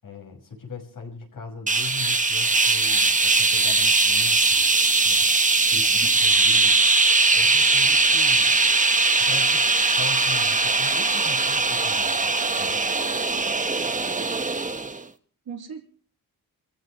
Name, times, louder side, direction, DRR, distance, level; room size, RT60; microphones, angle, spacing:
voice 1, 0.0-4.7 5.0-5.3 5.7-6.8 7.3-8.6 9.2-9.7 10.0-12.1 12.6-12.8, left 4 dB, 60° left, 2 dB, 5.8 m, -39 dB
sound 1, 1.7-15.0, right 3 dB, 20° right, 1.2 m, -20 dB
voice 2, 5.8-6.4 9.2-9.3 15.4-15.8, right 6 dB, 80° right, 2 dB, 3.3 m, -42 dB
29.5 x 15.0 x 3.1 m, 0.42 s
wide cardioid pair, 125°, 37 cm